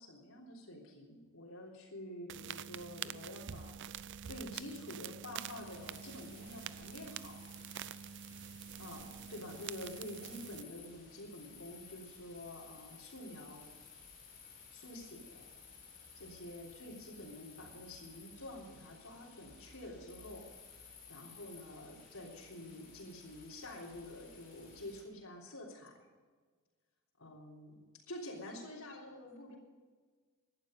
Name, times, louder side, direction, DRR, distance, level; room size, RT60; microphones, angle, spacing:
voice 1, 0.0-3.7 4.2-7.4 8.8-13.6 14.7-15.5 16.2-20.5 21.1-26.1 27.2-29.5, left 1 dB, 90° left, -5 dB, 3.5 m, -48 dB
sound 1, 2.3-10.6, right 9 dB, 60° right, 0.5 m, -46 dB
sound 2, 5.5-25.0, left 5 dB, 45° left, 6.1 m, -56 dB
17.0 x 11.5 x 5.2 m, 1.4 s
head